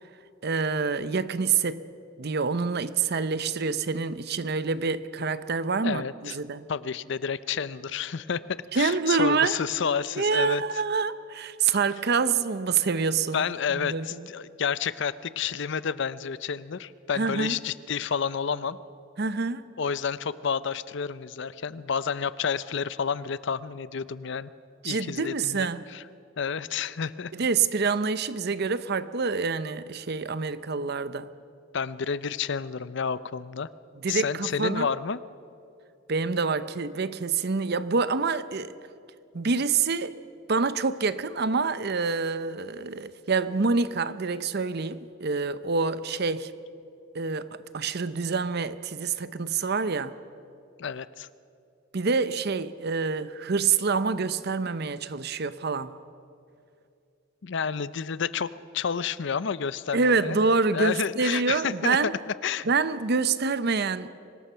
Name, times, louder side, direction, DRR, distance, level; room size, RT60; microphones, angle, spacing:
voice 1, 0.4-1.8 2.2-6.7 8.7-9.6 10.2-13.4 13.7-14.3 17.2-17.6 19.2-19.7 24.8-25.8 27.3-31.3 34.0-34.9 36.1-38.7 39.3-40.1 40.5-46.5 47.1-50.1 51.9-56.0 59.9-62.2 62.6-64.1, right 4 dB, 55° right, 0.7 m, -26 dB
voice 2, 5.8-6.4 6.7-10.6 13.3-18.8 19.8-24.5 24.8-26.0 26.4-27.3 31.7-33.7 34.1-35.2 50.8-51.3 57.4-60.4 60.7-62.0 62.4-62.7, left 6 dB, 65° left, 0.5 m, -30 dB
24.5 x 19.5 x 5.7 m
head